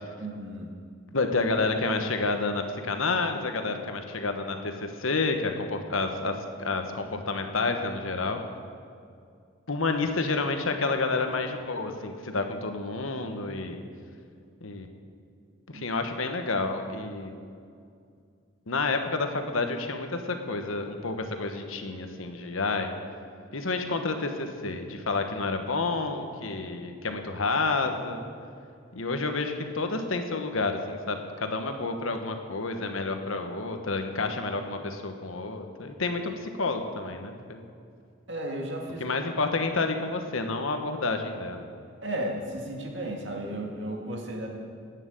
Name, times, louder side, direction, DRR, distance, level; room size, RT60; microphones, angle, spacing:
voice 1, 0.2-0.7 15.7-15.8 38.3-39.1 42.0-44.5, right 1 dB, 60° right, 0 dB, 2.1 m, -34 dB
voice 2, 1.1-8.4 9.7-13.8 14.6-14.9 15.7-17.3 18.7-22.9 23.5-28.2 28.9-37.7 39.0-41.6, left 3 dB, 85° left, 6 dB, 1.2 m, -29 dB
11.0 x 9.1 x 8.9 m, 2.3 s
head